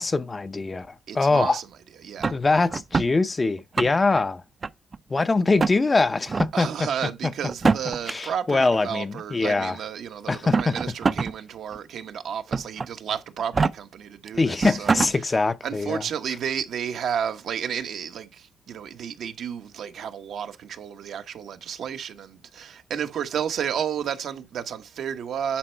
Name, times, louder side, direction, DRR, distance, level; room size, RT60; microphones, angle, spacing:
voice 1, 0.0-1.6 2.3-4.4 5.1-6.9 8.1-9.8 10.3-10.7 14.3-16.0, left 3 dB, 30° left, 0.7 m, -23 dB
voice 2, 1.1-1.7 2.0-2.4 6.5-15.3 15.6-25.6, right 8 dB, 80° right, 1.1 m, -32 dB
sound 1, 2.2-3.1 3.6-4.2 4.6-5.2 5.6-5.8 6.3-6.5 7.5-8.1 9.2-9.3 10.3-11.3 11.7-11.8 12.5-12.9 13.4-13.7 14.3-14.4 14.6-15.1, right 4 dB, 40° right, 0.5 m, -24 dB
10.0 x 4.2 x 4.5 m
cardioid pair, 85°, 0 cm